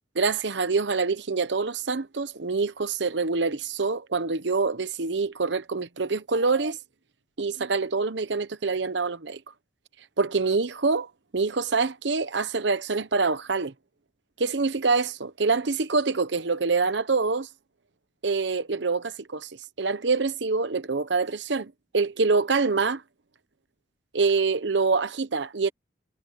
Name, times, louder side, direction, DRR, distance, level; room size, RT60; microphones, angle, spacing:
voice 1, 0.1-6.8 7.4-9.4 10.2-11.1 11.3-13.7 14.4-17.5 18.2-19.5 19.8-23.0 24.1-25.7, right 4 dB, 70° right, 1.0 m, -25 dB
head